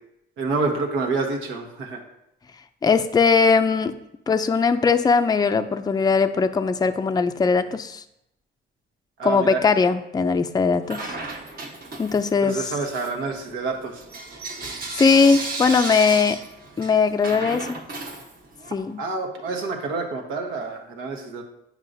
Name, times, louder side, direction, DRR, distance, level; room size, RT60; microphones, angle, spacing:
voice 1, 0.4-2.0 9.2-9.6 12.5-14.0 19.0-21.4, right 3 dB, 90° right, 2 dB, 1.2 m, -28 dB
voice 2, 2.8-3.9 4.3-8.0 9.2-11.1 12.0-12.6 14.9-16.4 16.8-17.8 18.7-19.0, left 5 dB, 20° left, 8 dB, 0.4 m, -20 dB
Bell / Coin (dropping), 10.9-12.4 12.8-18.8, right 3 dB, 45° right, 1.2 m, -34 dB
9.0 x 4.8 x 2.6 m, 0.83 s
cardioid pair, 90°, 20 cm